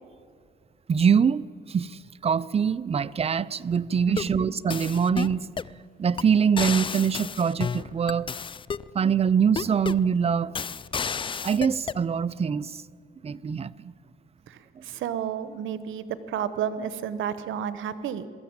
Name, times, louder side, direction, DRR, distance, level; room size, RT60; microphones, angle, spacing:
voice 1, 0.9-5.5 6.0-8.3 8.9-10.5 11.4-12.8 13.2-13.9 14.8-14.9, right 7 dB, 30° right, 0.5 m, -24 dB
sound 1, 4.0-4.4 4.7-5.7 6.2-6.3 6.6-8.9 9.6-10.1 10.6-12.0, left 6 dB, 25° left, 0.4 m, -32 dB
voice 2, 4.1-4.5 14.5-18.3, right 8 dB, 80° right, 1.0 m, -31 dB
22.5 x 13.5 x 8.9 m
cardioid pair, 90°, 20 cm